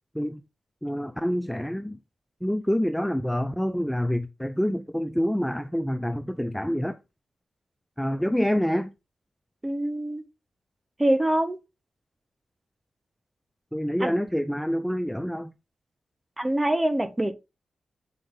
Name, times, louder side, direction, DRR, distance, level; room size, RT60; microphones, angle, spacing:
voice 1, 0.8-2.0 2.4-7.0 8.0-8.9 13.7-15.5, equal, 5° left, 0.6 m, -27 dB
voice 2, 9.6-10.2 11.0-11.6 14.0-14.1 16.4-17.3, right 1 dB, 20° right, 1.2 m, -24 dB
8.1 x 4.7 x 3.8 m
cardioid pair, 70°, 0 cm